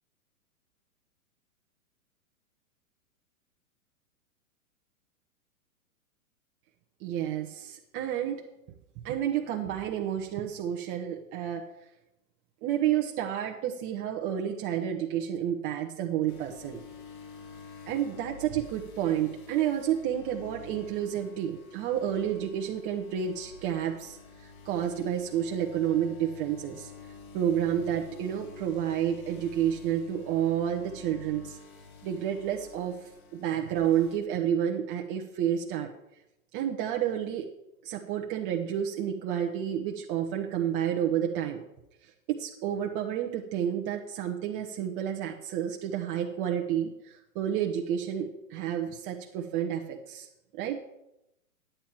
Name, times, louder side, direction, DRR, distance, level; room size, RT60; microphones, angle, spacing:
voice 1, 7.0-8.4 9.0-11.7 12.6-16.8 17.9-26.9 27.3-31.6 32.0-35.9 36.5-37.5 37.8-41.6 42.0-50.3 50.5-50.8, right 10 dB, 30° right, 1 dB, 0.9 m, -30 dB
sound 1, 16.3-34.2, left 4 dB, 75° left, 1.7 m, -49 dB
10.0 x 9.0 x 4.5 m, 0.87 s
hypercardioid pair, 115°, 44 cm